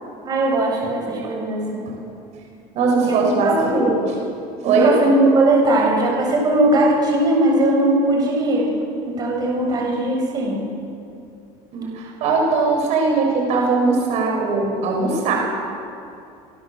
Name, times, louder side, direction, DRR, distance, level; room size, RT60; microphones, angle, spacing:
voice 1, 0.2-1.9 3.0-4.0 4.6-8.7 9.0-10.6, right 1 dB, 30° right, -1 dB, 7.6 m, -19 dB
voice 2, 2.7-3.9 4.6-4.9 9.6-9.7 11.7-15.3, right 4 dB, 55° right, 0 dB, 7.3 m, -20 dB
28.0 x 24.0 x 8.0 m, 2.6 s
cardioid pair, 150°, 14 cm